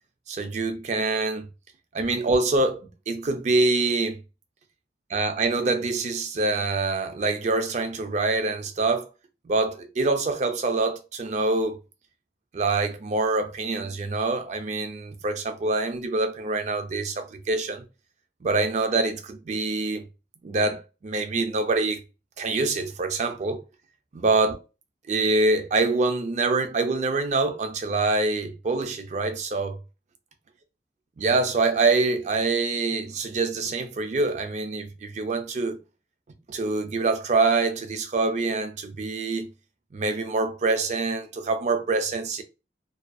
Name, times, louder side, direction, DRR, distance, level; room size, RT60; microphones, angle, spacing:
voice 1, 0.3-1.5 1.9-4.2 5.1-9.1 9.4-11.8 12.5-17.8 18.4-20.0 20.4-22.0 22.4-23.6 24.1-24.6 25.1-29.8 31.2-35.8 36.5-39.5 39.9-42.4, right 3 dB, 40° right, 0.4 m, -25 dB
2.5 x 2.3 x 2.3 m
head